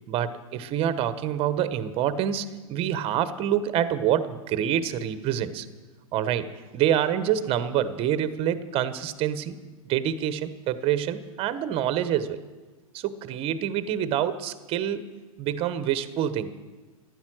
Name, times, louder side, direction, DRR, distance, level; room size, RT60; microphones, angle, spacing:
voice 1, 0.1-5.7 6.1-9.5 9.8-12.4 12.9-15.0 15.4-16.5, right 10 dB, 30° right, 13 dB, 1.0 m, -26 dB
14.5 x 11.0 x 6.2 m, 1.3 s
hypercardioid pair, 115°, 18 cm